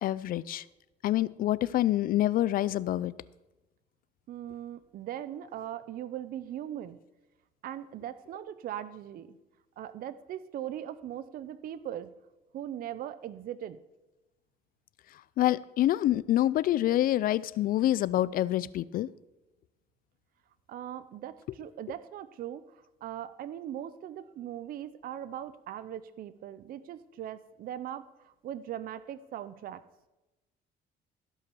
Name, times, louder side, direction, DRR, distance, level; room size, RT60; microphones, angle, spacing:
voice 1, 0.0-0.6 1.0-3.1 15.4-19.1, left 13 dB, 60° left, 19 dB, 0.4 m, -26 dB
voice 2, 4.3-7.0 7.6-9.4 9.8-12.1 12.5-13.8 20.7-29.8, right 11 dB, 60° right, 14 dB, 0.6 m, -40 dB
15.5 x 5.6 x 6.9 m, 1.0 s
cardioid pair, 110°, 17 cm